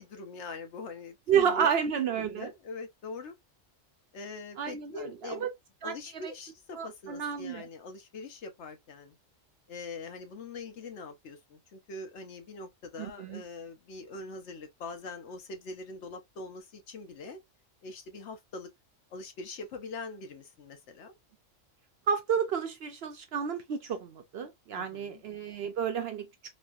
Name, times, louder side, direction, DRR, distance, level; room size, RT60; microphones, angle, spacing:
voice 1, 0.0-1.7 2.2-3.4 4.1-5.5 5.8-9.2 9.7-17.4 17.8-18.7 19.1-21.1 24.7-25.2, left 3 dB, 65° left, 1.0 m, -43 dB
voice 2, 1.3-2.5 4.6-5.5 5.8-6.3 6.7-7.7 13.0-13.4 22.1-26.3, right 7 dB, 65° right, 0.7 m, -31 dB
3.1 x 2.2 x 2.4 m
omnidirectional pair, 1.3 m